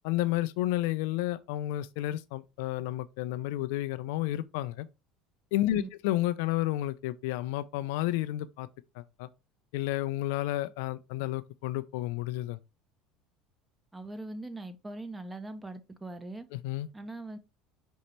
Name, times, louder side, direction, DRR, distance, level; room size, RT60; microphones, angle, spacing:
voice 1, 0.0-4.9 5.5-8.7 9.0-9.3 9.7-12.6 16.5-16.9, left 15 dB, 75° left, 0.4 m, -31 dB
voice 2, 13.9-16.5 16.9-17.4, right 2 dB, 15° right, 0.7 m, -41 dB
5.3 x 2.9 x 3.2 m
supercardioid pair, 90°, 0 cm